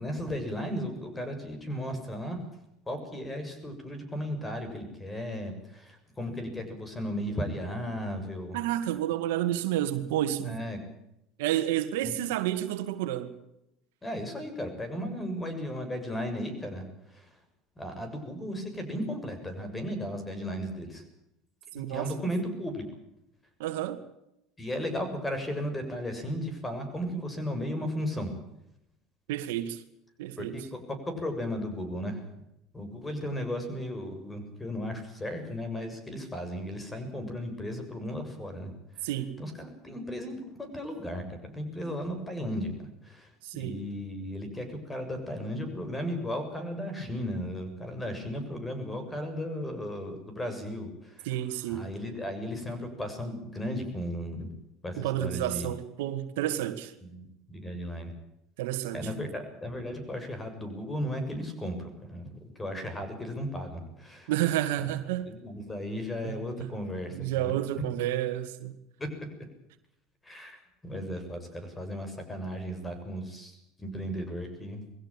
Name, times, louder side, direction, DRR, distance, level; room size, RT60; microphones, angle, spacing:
voice 1, 0.0-2.4 2.9-8.6 10.4-10.8 12.0-12.2 14.0-17.3 17.8-21.0 21.7-22.8 24.6-28.3 30.4-32.2 32.7-38.7 38.9-39.1 39.4-51.4 51.6-54.5 54.8-55.7 57.0-58.1 58.9-64.3 65.3-67.6 69.0-69.3 70.2-74.9, equal, 15° left, 7.0 m, -35 dB
voice 2, 8.5-10.6 11.4-13.3 21.7-22.2 23.6-24.0 29.3-29.8 30.2-30.6 39.0-39.4 43.4-43.8 51.3-51.9 55.0-56.9 58.6-59.0 64.3-65.3 66.2-66.7 67.1-68.8, right 13 dB, 85° right, 2.0 m, -30 dB
21.5 x 16.5 x 8.8 m
supercardioid pair, 100°, 0 cm